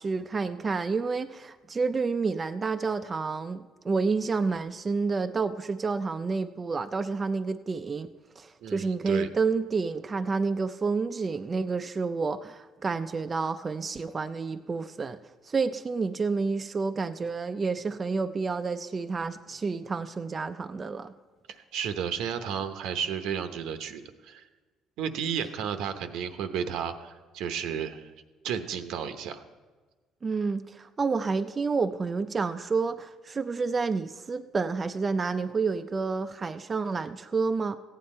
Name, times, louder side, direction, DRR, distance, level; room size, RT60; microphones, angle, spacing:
voice 1, 0.0-8.1 8.4-15.2 15.4-21.1 30.2-37.8, right 4 dB, 25° right, 8 dB, 0.4 m, -29 dB
voice 2, 8.6-9.3 21.7-24.4 25.0-28.0 28.4-29.4, right 8 dB, 75° right, 9 dB, 0.8 m, -32 dB
15.0 x 9.3 x 4.3 m, 1.3 s
cardioid pair, 135°, 0 cm